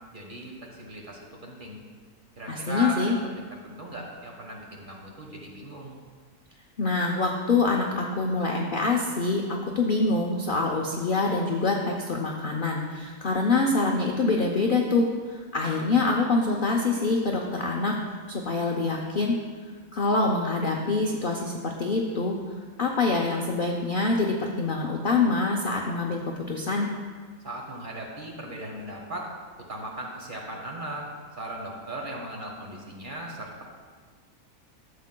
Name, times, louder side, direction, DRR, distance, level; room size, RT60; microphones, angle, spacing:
voice 1, 0.1-1.8 2.4-3.1 3.6-6.0 27.4-29.3 29.7-31.1 31.4-33.6, right 1 dB, 35° right, -1 dB, 1.1 m, -37 dB
voice 2, 2.5-3.2 6.8-17.9 18.3-19.4 19.9-22.4 22.8-26.2 26.5-26.9, left 3 dB, 55° left, 0 dB, 0.6 m, -25 dB
12.5 x 7.3 x 2.2 m, 1.6 s
omnidirectional pair, 1.6 m